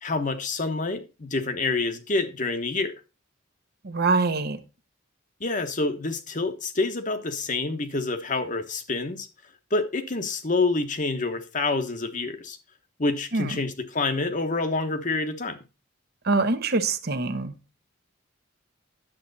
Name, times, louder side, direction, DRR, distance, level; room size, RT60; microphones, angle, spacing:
voice 1, 0.0-2.9 5.4-9.3 9.7-12.6 13.0-15.6, left 3 dB, 40° left, 1.2 m, -27 dB
voice 2, 3.8-4.6 13.3-13.5 16.2-17.5, right 3 dB, 50° right, 1.0 m, -24 dB
10.5 x 7.5 x 4.0 m
head